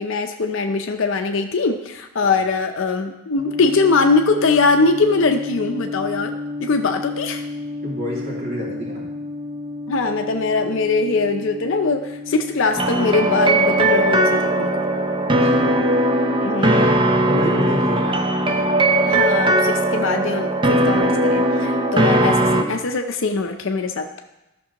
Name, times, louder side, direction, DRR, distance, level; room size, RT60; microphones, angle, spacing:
voice 1, 0.0-6.3 6.6-7.4 9.9-14.7 16.4-17.0 19.1-24.0, left 3 dB, 60° left, 5 dB, 0.5 m, -21 dB
sound 1, 3.3-22.9, left 2 dB, 60° right, 2.9 m, -33 dB
voice 2, 7.8-9.0 15.4-15.8 16.5-16.8 17.2-18.2 18.5-18.6, equal, 45° right, -6 dB, 3.0 m, -28 dB
sound 2, 12.8-22.6, right 1 dB, 20° right, 0.6 m, -18 dB
13.5 x 6.0 x 2.9 m, 0.95 s
head